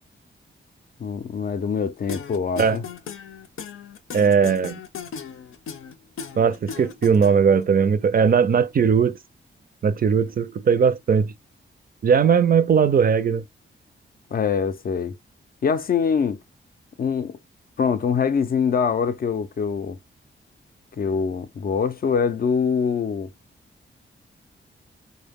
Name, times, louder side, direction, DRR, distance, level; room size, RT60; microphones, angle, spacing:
voice 1, 1.0-2.8 14.3-15.2 15.6-16.4 17.0-17.4 17.8-20.0 21.0-23.3, left 6 dB, 45° left, 0.4 m, -24 dB
sound 1, 2.1-7.6, left 6 dB, 90° left, 0.6 m, -37 dB
voice 2, 4.1-4.8 6.4-9.1 9.8-11.3 12.0-13.4, right 6 dB, 45° right, 0.4 m, -19 dB
4.4 x 2.1 x 3.5 m
wide cardioid pair, 155°, 21 cm